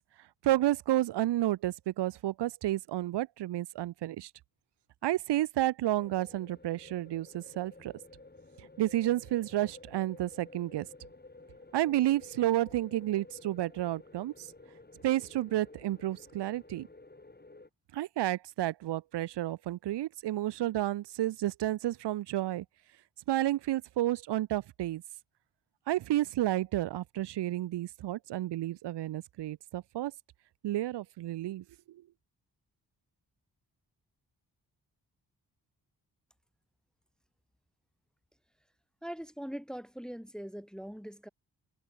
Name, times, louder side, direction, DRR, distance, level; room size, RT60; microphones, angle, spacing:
voice 1, 0.4-4.3 5.0-7.9 8.8-10.9 11.7-14.5 15.0-16.9 17.9-22.6 23.3-25.0 25.9-30.1 30.6-32.0, right 14 dB, 85° right, 0.7 m, -31 dB
sound 1, 6.0-17.7, left 2 dB, 25° left, 5.3 m, -53 dB
voice 2, 39.0-41.3, equal, ahead, 0.8 m, -41 dB
cardioid pair, 60°, 40 cm